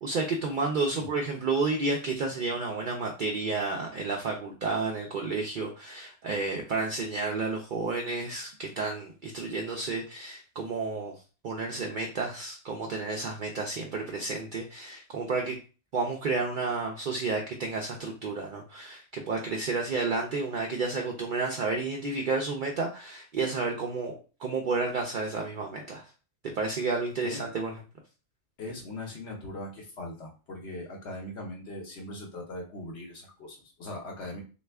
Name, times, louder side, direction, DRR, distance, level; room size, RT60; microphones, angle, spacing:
voice 1, 0.0-11.1 11.4-15.6 15.9-26.1 26.4-27.7, right 3 dB, 60° right, 1 dB, 0.6 m, -31 dB
voice 2, 28.6-34.4, left 1 dB, 70° left, 0 dB, 1.0 m, -40 dB
3.2 x 2.4 x 3.3 m, 0.34 s
omnidirectional pair, 1.2 m